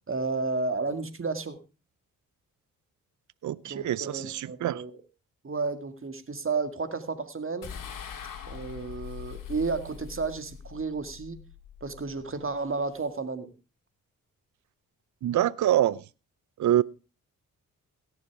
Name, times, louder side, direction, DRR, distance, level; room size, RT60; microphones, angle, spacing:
voice 1, 0.1-1.6 3.7-4.9 5.4-7.7 8.5-11.4 11.8-13.5, right 4 dB, 40° right, 2.0 m, -32 dB
voice 2, 3.4-4.8 15.2-16.0 16.6-16.8, right 12 dB, 60° right, 0.6 m, -25 dB
sound 1, 7.6-13.0, left 7 dB, 70° left, 2.2 m, -43 dB
17.0 x 7.1 x 4.8 m
cardioid pair, 55°, 34 cm